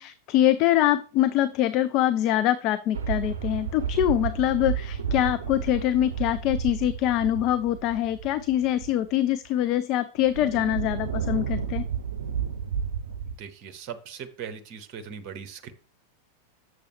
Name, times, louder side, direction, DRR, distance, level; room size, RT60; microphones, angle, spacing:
voice 1, 0.0-11.8, left 12 dB, 40° left, 13 dB, 0.4 m, -24 dB
sound 1, 2.9-9.1 9.6-9.7 10.2-13.3, right 7 dB, 70° right, 0.6 m, -31 dB
voice 2, 13.3-15.7, right 7 dB, 40° right, 9 dB, 0.9 m, -39 dB
7.8 x 6.8 x 3.2 m, 0.40 s
figure-of-eight pair, 90°, 0 cm